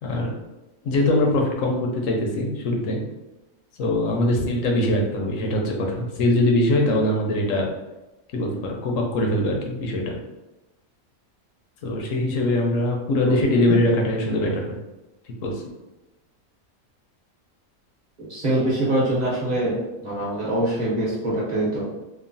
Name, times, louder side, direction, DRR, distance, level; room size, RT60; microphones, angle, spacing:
voice 1, 0.0-0.3 0.8-3.0 3.8-7.7 8.3-10.1 11.8-14.8 15.4-15.5, left 1 dB, 70° left, 1 dB, 0.9 m, -22 dB
voice 2, 13.2-13.6 18.2-19.7 20.0-21.8, right 1 dB, 40° right, -7 dB, 0.7 m, -24 dB
3.0 x 2.0 x 2.5 m, 1.0 s
omnidirectional pair, 1.5 m